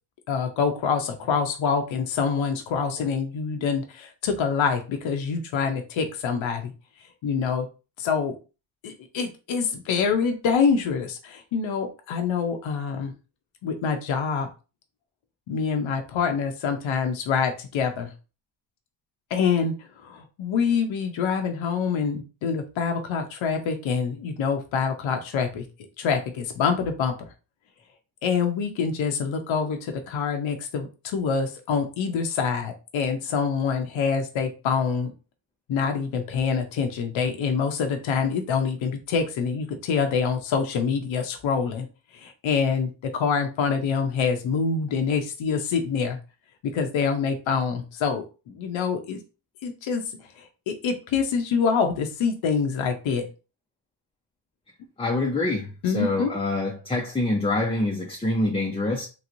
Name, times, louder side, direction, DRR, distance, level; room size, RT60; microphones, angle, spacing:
voice 1, 0.3-6.7 7.2-7.7 8.0-8.4 8.8-13.1 13.6-14.5 15.5-18.1 19.3-25.6 26.0-27.1 28.2-35.1 35.7-41.9 42.1-46.2 46.7-49.2 49.6-50.0 50.4-53.2 55.8-56.3, left 6 dB, 70° left, 0.7 m, -26 dB
voice 2, 55.0-59.1, left 2 dB, 10° left, 0.5 m, -26 dB
3.1 x 3.0 x 2.5 m
cardioid pair, 85°, 48 cm